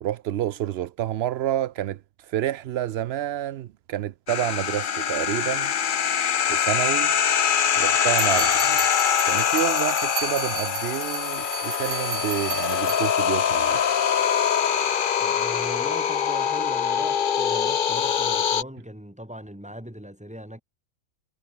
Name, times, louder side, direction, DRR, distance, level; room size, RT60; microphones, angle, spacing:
voice 1, 0.0-5.7 6.5-7.1 7.7-8.8 9.3-13.8, right 12 dB, 85° right, 0.5 m, -29 dB
sound 1, 4.3-18.6, left 8 dB, 45° left, 0.7 m, -23 dB
sound 2, 8.1-13.2, right 12 dB, 60° right, 0.9 m, -34 dB
voice 2, 15.2-20.6, equal, 5° right, 3.7 m, -39 dB
omnidirectional pair, 1.6 m